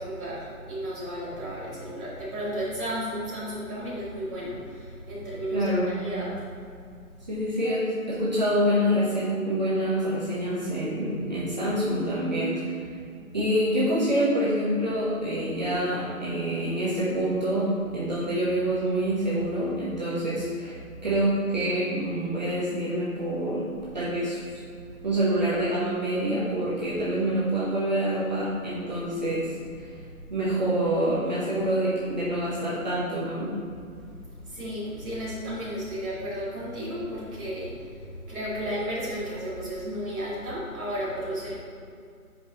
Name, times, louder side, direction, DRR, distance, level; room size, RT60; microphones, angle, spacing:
voice 1, 0.0-6.3 34.4-41.6, equal, ahead, -24 dB, 1.7 m, -33 dB
voice 2, 5.5-6.0 7.3-12.8 13.3-24.4 25.0-29.5 30.3-33.5, right 1 dB, 30° right, -9 dB, 1.2 m, -26 dB
10.5 x 5.0 x 3.2 m, 2.4 s
hypercardioid pair, 175°, 44 cm